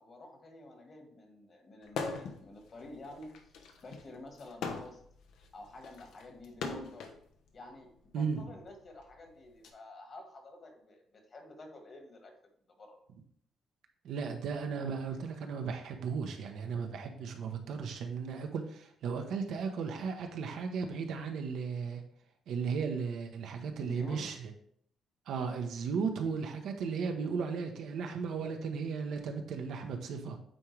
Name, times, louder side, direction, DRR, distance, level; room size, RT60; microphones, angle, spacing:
voice 1, 0.0-3.5 3.8-5.0 5.5-7.1 7.5-12.3 12.8-13.0 23.8-24.3, left 2 dB, 45° left, 3 dB, 1.6 m, -50 dB
sound 1, 1.9-2.4 2.8-7.2 8.1-9.7, left 4 dB, 85° left, 0.9 m, -41 dB
voice 2, 14.0-22.0 22.5-24.5 25.3-30.4, right 5 dB, 75° right, 5 dB, 1.0 m, -35 dB
9.0 x 3.7 x 3.3 m, 0.65 s
cardioid pair, 90°, 0 cm